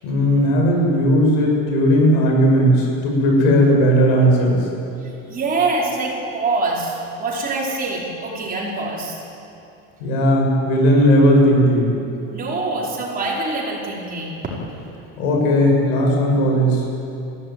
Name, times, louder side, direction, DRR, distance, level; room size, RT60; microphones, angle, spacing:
voice 1, 0.0-4.6 10.0-11.9 15.2-16.8, equal, 85° left, 0 dB, 7.3 m, -16 dB
voice 2, 5.0-9.2 12.3-14.4, right 3 dB, 25° right, -3 dB, 4.8 m, -24 dB
22.0 x 16.0 x 9.2 m, 2.7 s
cardioid pair, 165°, 36 cm